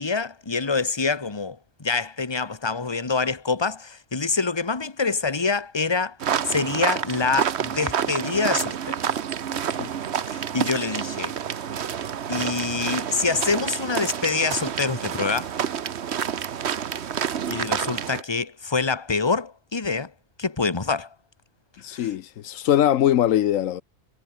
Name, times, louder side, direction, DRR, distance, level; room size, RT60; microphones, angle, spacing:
voice 1, 0.0-6.2 6.5-8.9 10.3-11.4 12.3-15.5 17.5-20.1 20.4-21.1 21.9-22.1, left 4 dB, 20° left, 1.4 m, -26 dB
sound 1, 6.2-18.2, right 8 dB, 60° right, 1.1 m, -28 dB
voice 2, 21.8-23.8, left 11 dB, 80° left, 1.1 m, -21 dB
omnidirectional pair, 1.3 m